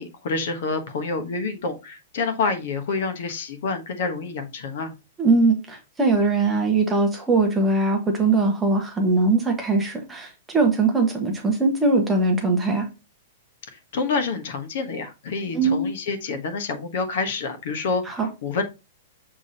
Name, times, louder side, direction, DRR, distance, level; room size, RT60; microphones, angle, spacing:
voice 1, 0.0-4.9 13.9-18.6, left 4 dB, 50° left, 1.2 m, -28 dB
voice 2, 5.2-12.9 15.5-15.9 18.1-18.3, right 3 dB, 5° right, 1.0 m, -21 dB
6.9 x 3.6 x 4.1 m
supercardioid pair, 180°, 0 cm